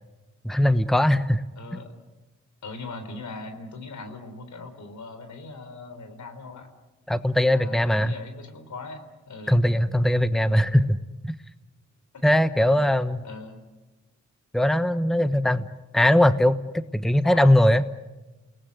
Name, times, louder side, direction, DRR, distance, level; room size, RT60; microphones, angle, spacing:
voice 1, 0.4-1.4 7.1-8.2 9.5-11.0 11.2-11.3 12.2-13.2 14.5-15.7 15.9-16.6 16.9-17.9, left 1 dB, ahead, 12 dB, 1.1 m, -20 dB
voice 2, 1.6-1.9 2.6-6.7 7.4-9.5 12.1-12.3 12.7-12.8 13.2-13.6 17.2-17.7, left 3 dB, 75° left, 8 dB, 3.7 m, -40 dB
29.0 x 19.5 x 9.5 m, 1.1 s
cardioid pair, 55°, 29 cm